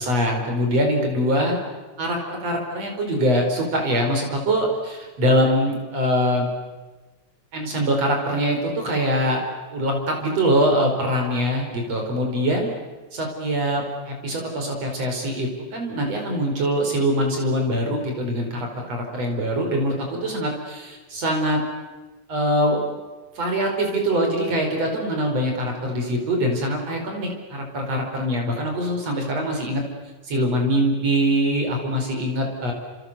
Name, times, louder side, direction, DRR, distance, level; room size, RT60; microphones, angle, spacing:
voice 1, 0.0-1.6 2.0-6.5 7.5-9.4 9.7-12.7 13.1-21.6 22.3-22.9 23.4-29.8 30.2-32.7, equal, 45° right, 2 dB, 6.0 m, -23 dB
29.0 x 28.0 x 6.9 m, 1.2 s
omnidirectional pair, 4.2 m